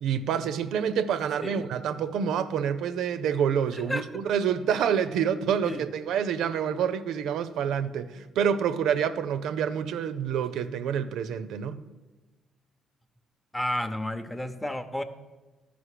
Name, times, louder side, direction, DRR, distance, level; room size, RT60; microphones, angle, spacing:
voice 1, 0.0-11.8, right 8 dB, 80° right, 0.5 m, -27 dB
voice 2, 3.7-4.0 5.6-5.8 13.5-15.0, left 1 dB, 10° left, 0.7 m, -31 dB
12.5 x 5.2 x 4.9 m
cardioid pair, 90°, 0 cm